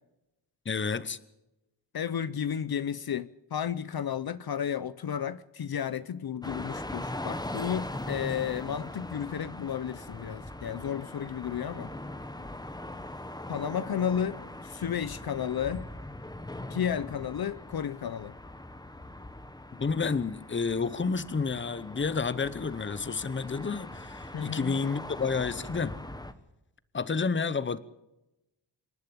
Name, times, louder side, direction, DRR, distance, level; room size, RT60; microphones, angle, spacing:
voice 1, 0.6-1.2 19.8-26.0 26.9-27.8, left 5 dB, 25° left, 0.9 m, -30 dB
voice 2, 1.9-11.9 13.5-15.9 16.7-18.3 24.3-24.8, left 8 dB, 55° left, 0.7 m, -33 dB
sound 1, 6.4-26.3, left 1 dB, 10° left, 1.1 m, -41 dB
26.5 x 11.5 x 8.6 m
wide cardioid pair, 145°, 43 cm